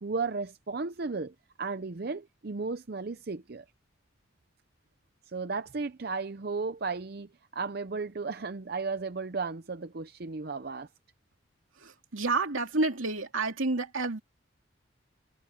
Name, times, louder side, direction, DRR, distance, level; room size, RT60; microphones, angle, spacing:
voice 1, 0.0-3.6 5.3-10.9, right 4 dB, 50° right, 0.6 m, -34 dB
voice 2, 11.8-14.2, right 3 dB, 75° right, 2.7 m, -29 dB
head